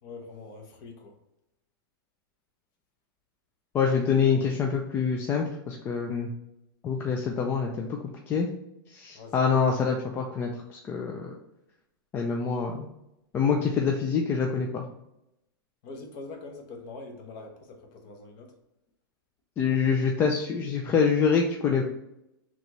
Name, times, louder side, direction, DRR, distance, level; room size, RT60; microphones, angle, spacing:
voice 1, 0.0-1.1 9.2-9.5 15.8-18.5, left 3 dB, 35° left, 3 dB, 0.9 m, -43 dB
voice 2, 3.7-6.3 6.8-7.9 8.3-8.5 8.9-11.3 12.1-12.9 13.3-14.8 19.6-21.8, left 6 dB, 20° left, 1 dB, 0.3 m, -26 dB
4.2 x 2.9 x 3.0 m, 0.86 s
hypercardioid pair, 150°, 12 cm